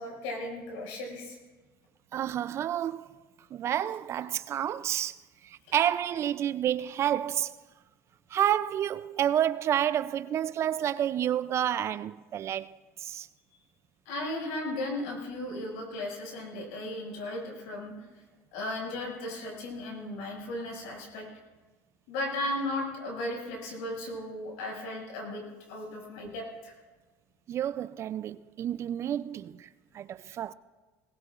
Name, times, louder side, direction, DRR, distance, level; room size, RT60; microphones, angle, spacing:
voice 1, 0.0-1.4 5.7-5.8 14.0-18.0 18.5-21.3 22.1-25.4 25.7-26.7, left 1 dB, 80° left, 6.2 m, -36 dB
voice 2, 2.1-3.1 3.5-5.2 5.4-7.6 8.3-13.3 27.5-29.7 29.9-30.5, right 10 dB, 40° right, 0.5 m, -29 dB
21.0 x 19.0 x 2.5 m
supercardioid pair, 110°, 7 cm